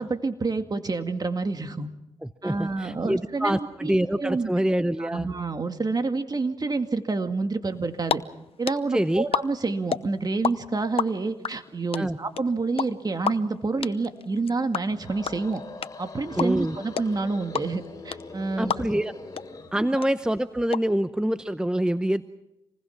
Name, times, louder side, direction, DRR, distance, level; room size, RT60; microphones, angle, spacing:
voice 1, 0.0-1.9 2.4-3.9 4.2-4.5 5.0-8.2 8.6-15.6 16.0-18.9 19.7-19.9, right 3 dB, 35° right, 7 dB, 2.1 m, -28 dB
voice 2, 2.2-5.3 8.9-9.3 11.9-12.2 16.4-16.8 18.6-19.1 19.7-22.2, right 1 dB, 5° right, 12 dB, 0.8 m, -25 dB
sound 1, 7.8-8.2 8.4-10.5 10.8-19.1 19.4-19.5 19.7-20.8, left 7 dB, 60° left, 0.8 m, -28 dB
sound 2, 14.8-19.8, left 3 dB, 35° left, 4.3 m, -42 dB
27.0 x 20.0 x 5.9 m, 0.92 s
cardioid pair, 60°, 11 cm